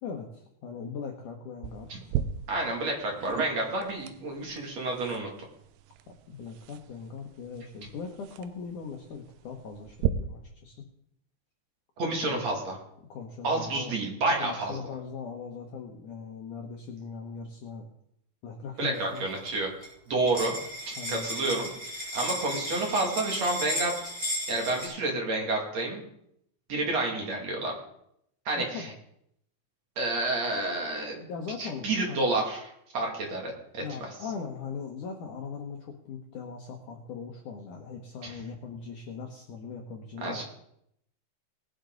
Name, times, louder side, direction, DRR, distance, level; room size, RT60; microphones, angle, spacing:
voice 1, 0.0-2.2 6.1-10.9 12.2-12.4 13.1-14.0 14.4-17.9 18.4-19.2 21.0-21.3 28.7-28.9 31.3-32.4 33.8-40.4, left 5 dB, 80° left, 2 dB, 1.8 m, -40 dB
sound 1, 1.6-10.1, right 12 dB, 85° right, 2.2 m, -38 dB
voice 2, 2.5-5.3 12.0-12.8 13.4-14.8 18.8-19.7 20.1-20.5 20.9-23.9 24.5-26.0 26.7-27.7 28.4-28.9 30.0-31.2 31.6-32.7 32.9-34.1 38.2-38.3 40.2-40.4, right 2 dB, 45° right, 0 dB, 2.9 m, -29 dB
sound 2, 19.0-19.5 19.8-19.9 20.1-24.9, equal, 10° right, 6.0 m, -35 dB
19.5 x 9.9 x 3.9 m, 0.74 s
omnidirectional pair, 5.4 m